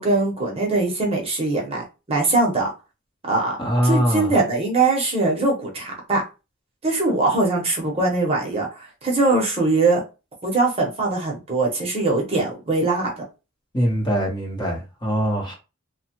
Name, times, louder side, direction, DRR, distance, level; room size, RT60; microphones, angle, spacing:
voice 1, 0.0-2.7 3.2-3.6 3.8-6.2 6.8-10.0 10.4-13.1, right 3 dB, 30° right, 0.8 m, -21 dB
voice 2, 3.6-4.3 13.7-15.5, equal, 20° left, 0.9 m, -22 dB
3.0 x 2.2 x 2.9 m
head